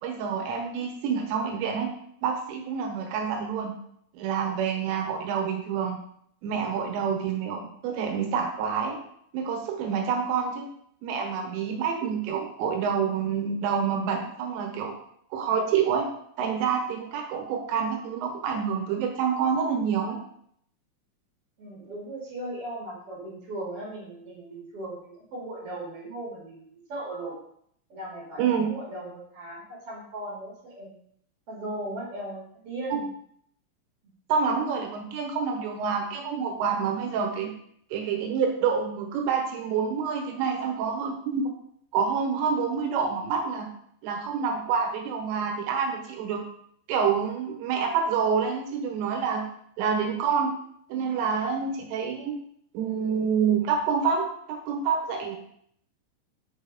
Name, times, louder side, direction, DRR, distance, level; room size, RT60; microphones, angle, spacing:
voice 1, 0.0-1.9 2.2-3.8 4.1-6.0 6.4-9.0 9.3-10.7 11.0-14.9 15.3-16.1 16.4-20.2 28.4-28.7 32.9-33.0 34.3-37.5 37.9-41.4 41.9-43.7 44.0-46.4 46.9-49.4 49.8-50.5 50.9-52.3 52.7-55.4, right 6 dB, 80° right, 2 dB, 3.6 m, -27 dB
voice 2, 21.6-27.4 27.9-30.9 31.5-33.1, right 1 dB, 45° right, -5 dB, 2.0 m, -37 dB
7.1 x 6.3 x 4.1 m, 0.68 s
omnidirectional pair, 5.9 m